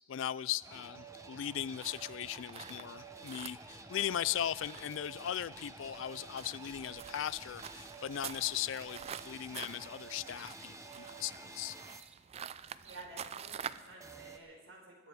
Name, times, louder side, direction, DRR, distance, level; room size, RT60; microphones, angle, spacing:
voice 1, 0.1-11.8, left 10 dB, 75° left, 20 dB, 0.4 m, -38 dB
sound 1, 0.6-12.0 14.0-14.4, right 3 dB, 15° right, 0.8 m, -50 dB
sound 2, 1.8-13.9, right 8 dB, 30° right, 0.3 m, -48 dB
voice 2, 12.8-15.1, right 2 dB, 85° right, 0 dB, 4.3 m, -52 dB
21.0 x 9.7 x 4.7 m, 1.3 s
head